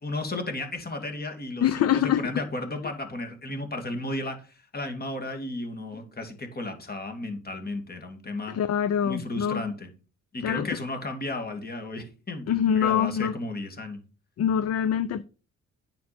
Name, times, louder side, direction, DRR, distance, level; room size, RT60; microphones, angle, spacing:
voice 1, 0.0-8.5 9.0-9.9 10.3-14.0, left 2 dB, 30° left, 2.8 m, -34 dB
voice 2, 1.6-2.2 8.5-9.7 10.4-10.7 12.5-13.3 14.4-15.2, left 9 dB, 55° left, 0.7 m, -24 dB
9.4 x 7.2 x 4.4 m
cardioid pair, 90°, 30 cm